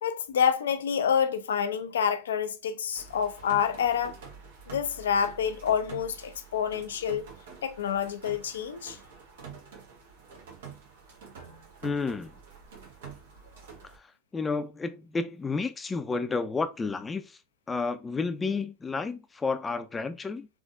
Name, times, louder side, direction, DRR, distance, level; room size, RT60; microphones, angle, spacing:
voice 1, 0.0-4.2 4.7-7.3 7.6-9.0, left 7 dB, 80° left, 0.4 m, -28 dB
sound 1, 2.9-14.0, right 6 dB, 75° right, 1.0 m, -47 dB
voice 2, 11.8-12.3 14.3-17.4 17.7-20.5, left 4 dB, 20° left, 0.5 m, -31 dB
3.6 x 2.6 x 2.5 m
hypercardioid pair, 90°, 0 cm